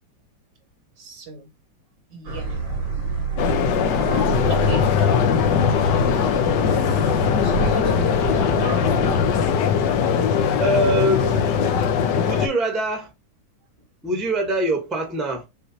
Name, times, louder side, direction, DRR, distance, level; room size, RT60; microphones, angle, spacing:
voice 1, 1.0-1.5 2.1-2.5 4.5-5.1 6.5-8.9, right 4 dB, 65° right, 1.6 m, -37 dB
sound 1, 2.3-9.5, right 4 dB, 85° right, 3.1 m, -29 dB
sound 2, 3.4-12.5, left 7 dB, 70° left, 1.3 m, -20 dB
voice 2, 10.6-11.5 12.2-13.1 14.0-15.5, right 1 dB, ahead, 0.8 m, -23 dB
6.3 x 2.6 x 2.8 m
omnidirectional pair, 2.1 m